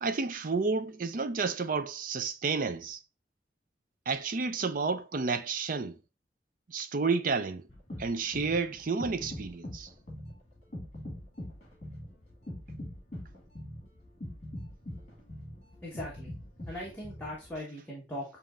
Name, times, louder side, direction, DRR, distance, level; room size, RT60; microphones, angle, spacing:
voice 1, 0.0-3.0 4.1-6.0 6.7-7.6 8.0-9.9, right 4 dB, 50° right, 0.5 m, -31 dB
sound 1, 7.7-17.6, left 1 dB, 40° left, 1.5 m, -43 dB
voice 2, 15.8-16.3 16.7-18.2, left 1 dB, 10° left, 1.2 m, -39 dB
7.0 x 2.9 x 2.5 m
head